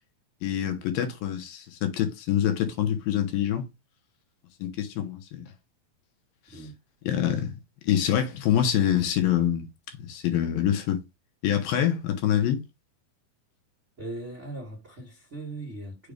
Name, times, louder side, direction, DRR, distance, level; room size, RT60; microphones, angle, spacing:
voice 1, 0.4-3.7 4.6-5.5 7.0-7.6 7.8-9.7 10.0-11.0 11.4-12.6, left 10 dB, 75° left, 2.8 m, -25 dB
voice 2, 14.0-16.1, right 2 dB, 25° right, 1.7 m, -39 dB
6.6 x 3.0 x 5.0 m
omnidirectional pair, 4.2 m